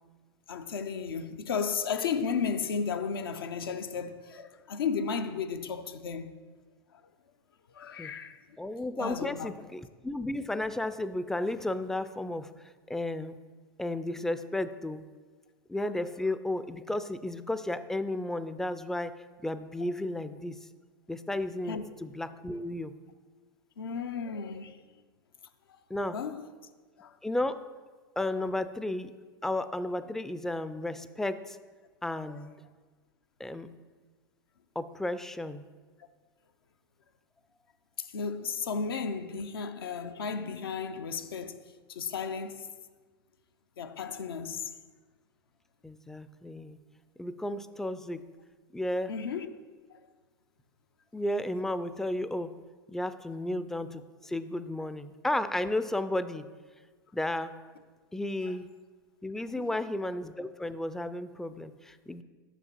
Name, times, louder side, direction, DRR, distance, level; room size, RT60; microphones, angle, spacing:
voice 1, 0.5-6.3 7.7-8.6 9.0-9.5 21.7-21.8 23.8-24.8 25.7-25.8 26.1-26.5 27.0-27.2 28.4-28.5 32.3-32.4 38.0-41.6 41.9-42.7 43.8-44.7 49.1-49.5 49.9-50.0 58.4-58.5 59.5-59.8, left 6 dB, 80° left, 0.5 m, -34 dB
voice 2, 8.6-12.5 12.9-13.4 13.8-15.0 15.7-19.1 19.4-20.6 21.1-22.9 25.9-26.2 27.2-27.6 28.2-29.1 29.4-31.6 32.0-32.5 33.4-33.7 34.8-35.6 45.8-46.8 47.2-48.2 48.7-49.1 51.1-52.5 52.9-56.5 57.1-57.5 58.1-58.7 59.2-62.2, left 1 dB, 5° left, 0.3 m, -33 dB
9.9 x 6.2 x 2.9 m
hypercardioid pair, 90°, 12 cm